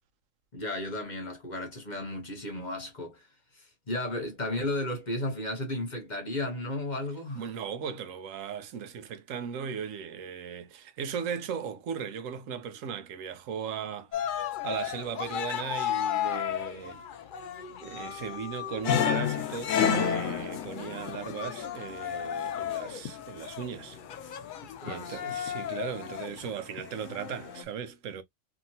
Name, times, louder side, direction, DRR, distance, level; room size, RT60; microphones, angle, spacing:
voice 1, 0.5-3.2 3.6-7.4 24.6-25.2, left 1 dB, 40° left, 0.9 m, -34 dB
voice 2, 7.3-17.0 17.8-24.0 24.8-28.2, right 7 dB, 85° right, 1.0 m, -37 dB
Cheering, 14.1-26.5, left 10 dB, 60° left, 0.5 m, -36 dB
sound 1, 18.8-22.3 22.6-23.1 23.8-24.3 24.9-25.5 25.8-26.1 26.6-27.6, left 7 dB, 85° left, 1.0 m, -30 dB
2.9 x 2.6 x 2.6 m
omnidirectional pair, 1.3 m